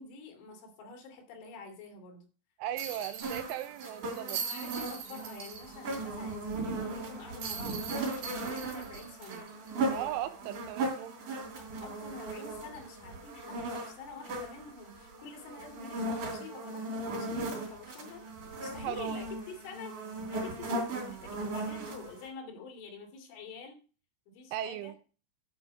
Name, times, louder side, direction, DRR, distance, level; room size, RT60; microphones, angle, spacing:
voice 1, 0.0-2.3 4.5-9.5 11.5-23.8 24.3-24.9, left 4 dB, 75° left, 3 dB, 4.7 m, -47 dB
voice 2, 2.6-4.4 9.9-11.1 18.8-19.3 24.5-24.9, right 12 dB, 85° right, 11 dB, 3.3 m, -37 dB
sound 1, 2.8-6.0 6.3-6.4 7.4-10.1 10.5-10.6 12.7-12.9, right 6 dB, 60° right, 4.4 m, -41 dB
sound 2, 3.2-22.3, right 2 dB, 45° right, 4.3 m, -37 dB
10.5 x 6.2 x 5.1 m, 0.36 s
omnidirectional pair, 5.6 m